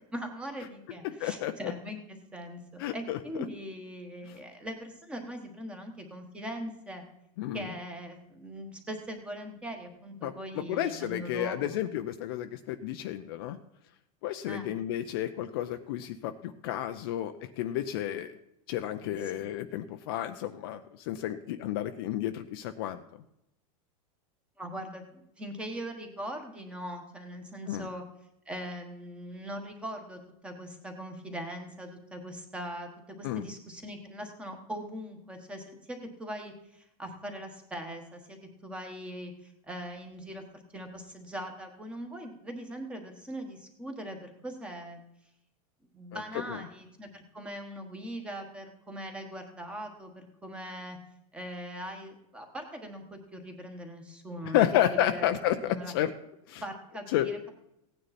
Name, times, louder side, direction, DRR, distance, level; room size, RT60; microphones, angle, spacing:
voice 1, 0.1-7.0 7.5-11.8 14.5-14.7 19.0-19.4 24.6-28.0 28.5-32.9 33.2-45.0 45.9-51.0 51.3-54.6 54.9-55.3 55.7-55.9 56.6-57.5, equal, 5° right, 5 dB, 1.3 m, -41 dB
voice 2, 1.2-1.7 2.8-3.2 7.4-7.7 10.2-13.6 14.2-18.3 18.7-23.0 27.7-27.9 33.2-33.5 46.1-46.2 54.4-56.1 56.5-56.6 57.1-57.3, left 12 dB, 40° left, 8 dB, 0.6 m, -31 dB
16.5 x 9.6 x 4.2 m, 0.82 s
supercardioid pair, 180°, 19 cm